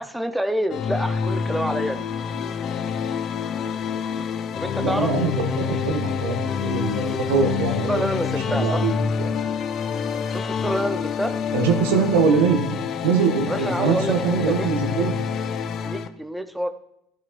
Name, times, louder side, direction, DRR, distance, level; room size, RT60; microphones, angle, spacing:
voice 1, 0.0-2.1 4.5-5.1 6.7-7.2 7.8-8.9 10.3-11.3 13.4-14.7 15.8-16.7, equal, 5° right, 7 dB, 0.7 m, -28 dB
sound 1, 0.7-16.1, left 7 dB, 45° left, 0.6 m, -27 dB
voice 2, 4.8-8.1 8.5-9.3 11.5-12.6 13.0-15.1, right 5 dB, 70° right, 3 dB, 1.5 m, -23 dB
12.0 x 10.5 x 2.6 m, 0.78 s
hypercardioid pair, 70°, 0 cm